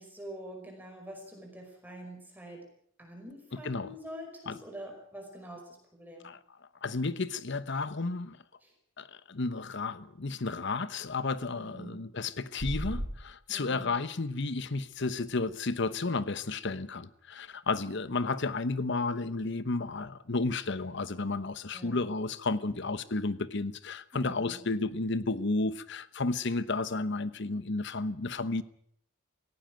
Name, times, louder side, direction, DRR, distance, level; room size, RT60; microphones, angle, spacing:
voice 1, 0.0-2.7 3.0-6.3 8.6-8.7 11.5-12.0 13.5-13.9 21.7-22.1 22.7-22.8 24.1-24.7, right 1 dB, 10° right, 2 dB, 5.3 m, -46 dB
voice 2, 3.5-3.9 4.5-4.6 6.2-6.4 6.8-8.4 9.0-28.6, left 3 dB, 60° left, 15 dB, 1.0 m, -32 dB
sound 1, 12.6-13.2, equal, 90° right, 4.5 m, -34 dB
18.0 x 16.0 x 9.1 m, 0.67 s
head